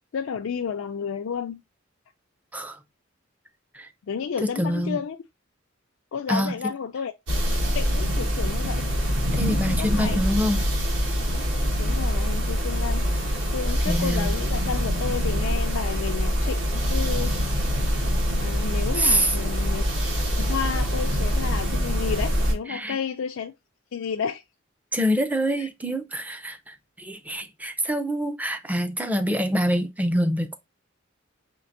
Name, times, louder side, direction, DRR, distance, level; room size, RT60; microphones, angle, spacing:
voice 1, 0.1-1.6 4.1-5.2 6.1-7.1 7.7-8.8 9.8-10.2 11.8-17.3 18.4-19.8 20.4-23.5 23.9-24.4 25.6-25.7, left 6 dB, 85° left, 0.4 m, -31 dB
voice 2, 4.4-5.0 6.3-6.7 9.3-10.6 13.9-14.4 18.9-19.4 22.7-23.0 24.9-30.6, equal, 10° right, 0.4 m, -25 dB
sound 1, 7.3-22.5, equal, 65° right, 1.4 m, -24 dB
4.4 x 3.2 x 2.5 m
head